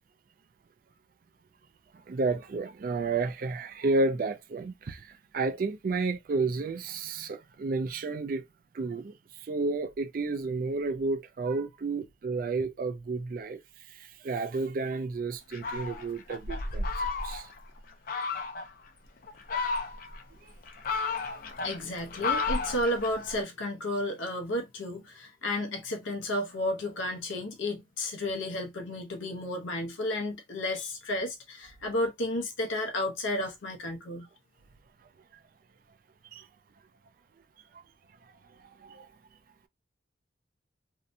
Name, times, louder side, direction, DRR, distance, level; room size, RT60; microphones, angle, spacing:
voice 1, 2.1-8.4 8.7-9.2 9.4-13.6 13.9-17.5 36.3-36.5 38.8-39.1, right 3 dB, 45° right, 0.3 m, -31 dB
Fowl, 15.5-17.6 18.1-18.7 19.3-20.2 20.6-23.4, left 4 dB, 45° left, 0.5 m, -32 dB
voice 2, 21.6-34.3, left 1 dB, 85° left, 0.7 m, -32 dB
2.7 x 2.1 x 2.5 m
head